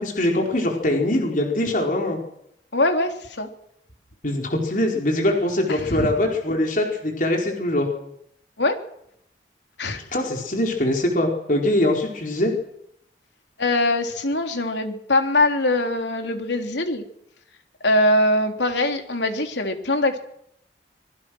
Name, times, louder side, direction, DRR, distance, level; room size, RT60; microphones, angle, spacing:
voice 1, 0.0-2.2 4.2-7.9 10.1-12.5, left 1 dB, 45° left, 1 dB, 4.5 m, -22 dB
voice 2, 2.7-3.5 5.7-6.1 8.6-8.8 9.8-10.0 13.6-17.1 17.8-20.2, left 2 dB, 75° left, 5 dB, 3.4 m, -22 dB
25.5 x 22.5 x 6.4 m, 0.74 s
head